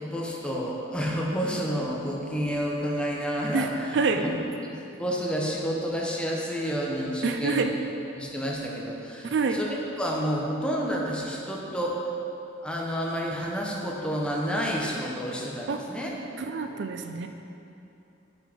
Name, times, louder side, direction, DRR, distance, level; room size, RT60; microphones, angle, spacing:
voice 1, 0.0-3.9 4.2-4.4 4.6-7.6 8.1-12.0 12.6-16.1, equal, 5° left, -3 dB, 0.9 m, -30 dB
voice 2, 3.5-4.2 7.2-7.7 9.2-9.6 15.7-15.8 16.4-17.3, right 4 dB, 60° right, 6 dB, 0.4 m, -27 dB
7.3 x 6.0 x 5.1 m, 2.9 s
head